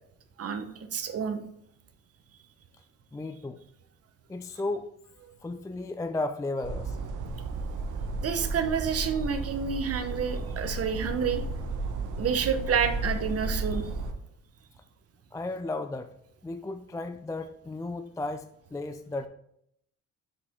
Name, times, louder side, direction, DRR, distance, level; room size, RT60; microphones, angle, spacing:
voice 1, 0.4-1.4 8.2-11.4 12.2-13.9, right 6 dB, 50° right, 8 dB, 1.0 m, -29 dB
voice 2, 3.1-3.6 4.3-4.9 5.4-7.0 15.3-16.1 16.4-19.3, left 2 dB, 10° left, 8 dB, 0.3 m, -34 dB
sound 1, 6.6-14.1, right 3 dB, 80° right, 0.9 m, -33 dB
6.4 x 5.1 x 3.6 m, 0.73 s
cardioid pair, 90°, 30 cm